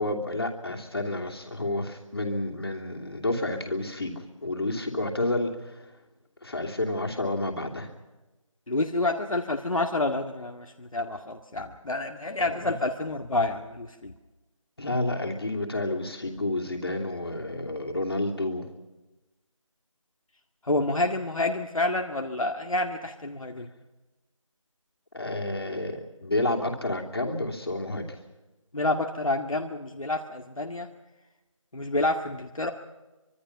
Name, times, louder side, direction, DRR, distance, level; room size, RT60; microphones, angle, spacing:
voice 1, 0.0-5.9 6.4-7.9 12.4-12.7 14.8-18.7 25.1-28.2, left 2 dB, 45° left, 2 dB, 3.0 m, -30 dB
voice 2, 8.7-14.1 20.6-23.7 28.7-30.9 31.7-32.7, left 2 dB, 75° left, 3 dB, 2.0 m, -28 dB
25.0 x 23.5 x 5.8 m, 1.1 s
figure-of-eight pair, 175°, 17 cm